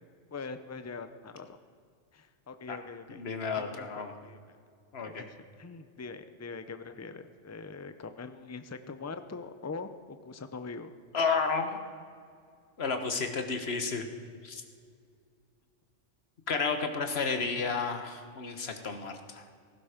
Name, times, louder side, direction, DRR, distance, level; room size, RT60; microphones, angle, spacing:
voice 1, 0.3-1.6 2.1-3.2 3.6-4.4 5.0-5.3 5.6-10.9, left 4 dB, 15° left, 10 dB, 0.6 m, -42 dB
voice 2, 3.1-4.1 4.9-5.3 11.1-11.8 12.8-14.1 14.4-14.6 16.5-19.5, left 5 dB, 55° left, 6 dB, 1.6 m, -32 dB
17.5 x 15.0 x 5.1 m, 2.2 s
omnidirectional pair, 1.3 m